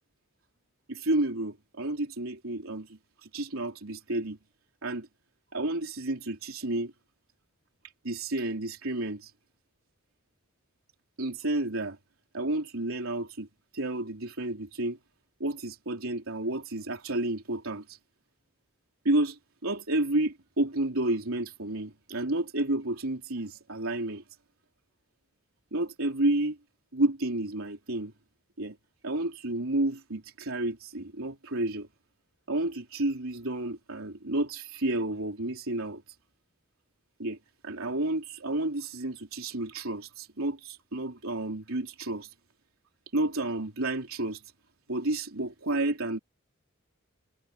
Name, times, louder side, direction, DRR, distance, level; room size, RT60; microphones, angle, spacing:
voice 1, 0.9-4.4 4.8-5.1 5.5-6.9 8.0-9.3 11.2-12.0 12.3-13.5 13.7-15.0 15.4-18.0 19.0-24.2 25.7-26.6 26.9-28.1 28.6-28.8 29.0-31.9 32.5-36.0 37.2-37.4 37.6-42.3 43.1-44.4 44.9-46.2, right 2 dB, 85° right, 3.4 m, -31 dB
head